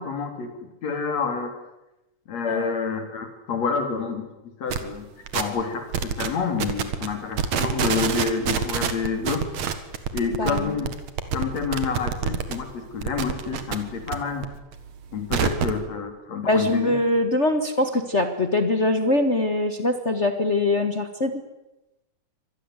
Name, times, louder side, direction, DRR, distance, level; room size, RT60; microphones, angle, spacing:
voice 1, 0.0-1.5 2.3-4.3 4.6-5.1 5.3-9.5 10.1-10.9 11.3-14.5 15.1-16.9, left 5 dB, 60° left, 6 dB, 4.4 m, -28 dB
sound 1, 4.7-4.9 5.3-5.6 5.9-6.3 6.6-7.1 7.3-12.5 12.9-14.1 14.4-15.8, right 7 dB, 65° right, 2.9 m, -26 dB
voice 2, 10.4-10.8 16.4-21.4, left 2 dB, 40° left, 7 dB, 1.0 m, -23 dB
25.5 x 19.5 x 8.1 m, 1.0 s
omnidirectional pair, 3.4 m